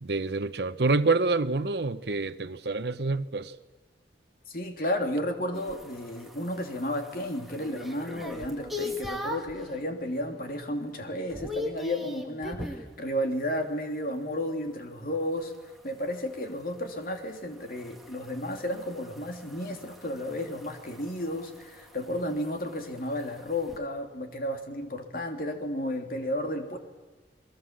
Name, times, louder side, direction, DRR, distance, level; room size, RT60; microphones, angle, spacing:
voice 1, 0.0-3.5, right 3 dB, 70° right, 0.9 m, -27 dB
voice 2, 4.5-26.8, left 1 dB, 55° left, 3.1 m, -33 dB
sound 1, 5.5-9.6 10.1-10.5 10.8-12.9 15.4-23.8, left 2 dB, ahead, 2.1 m, -41 dB
29.0 x 21.5 x 7.6 m
head